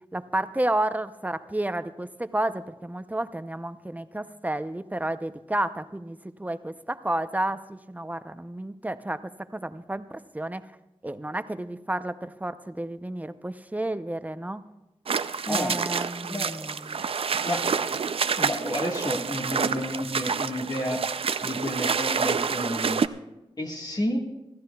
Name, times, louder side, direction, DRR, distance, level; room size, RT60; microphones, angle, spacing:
voice 1, 0.1-10.6 11.0-14.6 15.5-17.1, right 1 dB, 15° right, 11 dB, 0.6 m, -31 dB
sound 1, 15.1-23.1, right 6 dB, 65° right, 0.5 m, -28 dB
voice 2, 15.5-15.8 16.2-16.5 17.4-18.0 18.4-21.0 21.4-23.0 23.6-24.2, left 1 dB, 40° left, -1 dB, 1.7 m, -30 dB
25.0 x 13.5 x 2.3 m, 0.99 s
cardioid pair, 55°, 10 cm